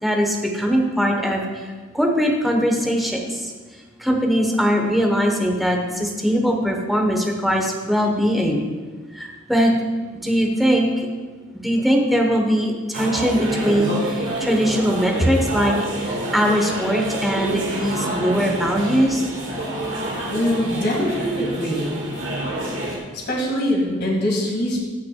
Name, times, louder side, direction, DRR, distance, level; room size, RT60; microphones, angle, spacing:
voice 1, 0.0-1.7 1.9-3.5 4.0-8.6 9.1-9.7 10.2-11.1 11.6-19.3, equal, ahead, 0 dB, 1.1 m, -21 dB
sound 1, 12.9-23.0, right 1 dB, 65° right, 1.8 m, -28 dB
voice 2, 20.3-22.0 22.9-24.8, left 1 dB, 55° left, -2 dB, 2.2 m, -23 dB
15.5 x 5.9 x 2.3 m, 1.4 s
head